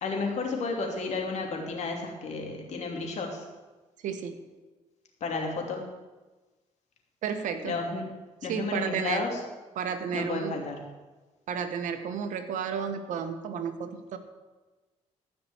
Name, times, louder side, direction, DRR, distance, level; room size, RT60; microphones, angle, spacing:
voice 1, 0.0-3.4 5.2-5.8 7.6-8.0 8.4-9.4 10.1-10.8, left 3 dB, 65° left, 1 dB, 3.0 m, -32 dB
voice 2, 4.0-4.4 7.2-7.7 8.4-9.2 9.7-10.6 11.5-14.2, right 7 dB, 80° right, 8 dB, 1.4 m, -32 dB
14.5 x 6.0 x 8.2 m, 1.2 s
cardioid pair, 100°, 13 cm